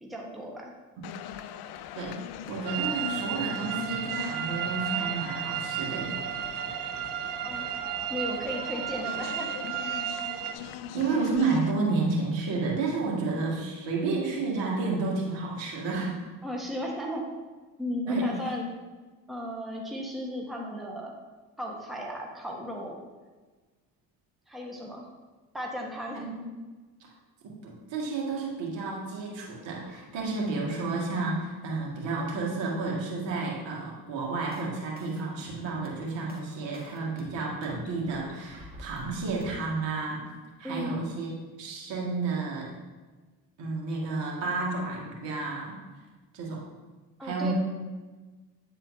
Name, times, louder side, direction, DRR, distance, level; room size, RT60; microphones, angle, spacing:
voice 1, 0.0-0.7 7.4-7.6 8.1-9.5 16.4-17.3 17.8-18.7 19.3-21.1 21.6-23.0 24.5-25.1 25.5-26.3 40.6-41.0 47.2-47.5, equal, ahead, -1 dB, 1.2 m, -35 dB
sound 1, 1.0-11.7, left 10 dB, 55° left, 0.5 m, -42 dB
voice 2, 2.5-6.2 10.9-16.2 18.1-18.4 26.1-26.4 27.4-40.2 40.6-41.3 41.6-42.7 43.6-45.8 46.3-46.6 47.2-47.5, right 3 dB, 65° right, -3 dB, 2.0 m, -31 dB
sound 2, 2.7-10.5, right 11 dB, 45° right, 0.7 m, -33 dB
sound 3, 34.5-39.5, right 1 dB, 20° right, 1.6 m, -47 dB
9.5 x 4.3 x 2.7 m, 1.3 s
hypercardioid pair, 60°, 48 cm